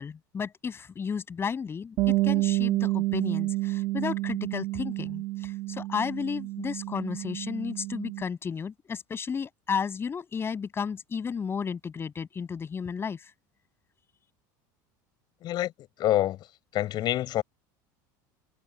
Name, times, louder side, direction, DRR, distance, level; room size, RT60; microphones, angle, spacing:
voice 1, 0.0-13.2, left 6 dB, 25° left, 7.9 m, -33 dB
Bass guitar, 2.0-8.2, right 19 dB, 55° right, 2.5 m, -29 dB
voice 2, 16.0-16.4 16.7-17.4, left 13 dB, 45° left, 7.1 m, -26 dB
supercardioid pair, 125°, 10 cm